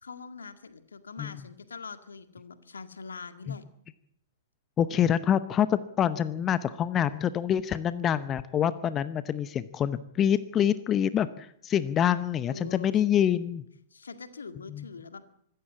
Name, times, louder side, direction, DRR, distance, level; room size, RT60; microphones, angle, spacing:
voice 1, 0.0-3.6 12.5-13.0 13.9-15.2, left 5 dB, 70° left, 10 dB, 1.8 m, -43 dB
voice 2, 4.8-13.6 14.7-14.8, left 9 dB, 25° left, 15 dB, 0.8 m, -26 dB
25.0 x 13.5 x 8.5 m, 0.72 s
figure-of-eight pair, 105°, 0 cm